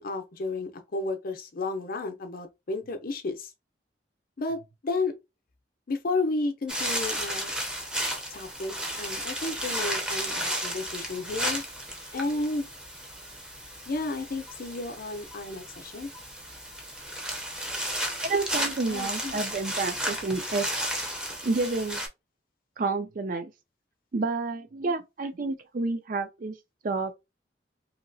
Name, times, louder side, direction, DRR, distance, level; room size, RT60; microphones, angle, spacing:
voice 1, 0.0-3.5 4.4-5.1 5.9-7.5 8.3-11.6 12.1-12.7 13.9-16.1 18.9-19.4, left 3 dB, 55° left, 0.6 m, -32 dB
sound 1, 6.7-22.1, equal, 5° right, 0.6 m, -33 dB
voice 2, 18.2-20.7 21.4-22.0 22.8-23.5 24.1-26.6 26.8-27.1, right 3 dB, 50° right, 0.4 m, -29 dB
2.9 x 2.7 x 2.6 m
head